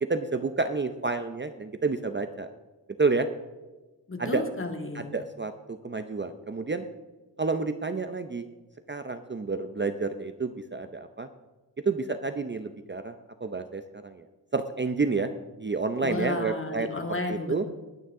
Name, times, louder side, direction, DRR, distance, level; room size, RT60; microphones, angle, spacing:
voice 1, 0.0-2.5 3.0-3.3 4.2-4.4 4.9-6.8 7.4-8.5 8.9-11.3 11.8-13.1 13.4-14.2 14.5-15.3 15.6-16.9 17.3-17.6, right 4 dB, 25° right, 9 dB, 0.7 m, -29 dB
voice 2, 4.1-5.1 16.0-17.7, left 2 dB, 30° left, 4 dB, 2.1 m, -32 dB
21.5 x 9.3 x 3.7 m, 1.2 s
wide cardioid pair, 105°, 43 cm